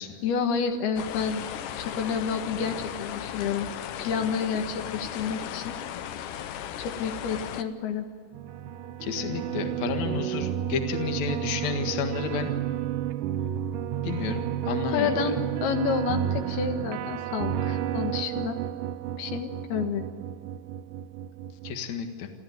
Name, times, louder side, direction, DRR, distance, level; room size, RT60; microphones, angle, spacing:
voice 1, 0.2-1.4 1.8-3.7 4.0-5.8 6.8-8.1 14.9-18.6 19.2-20.1, left 6 dB, 85° left, 6 dB, 3.5 m, -29 dB
sound 1, 1.0-7.6, left 10 dB, 70° left, 2.1 m, -36 dB
sound 2, 8.3-21.7, right 11 dB, 75° right, 2.2 m, -31 dB
voice 2, 9.0-12.5 14.0-15.3 21.6-22.3, left 6 dB, 55° left, 5 dB, 2.7 m, -31 dB
28.0 x 14.0 x 9.5 m, 2.1 s
omnidirectional pair, 4.4 m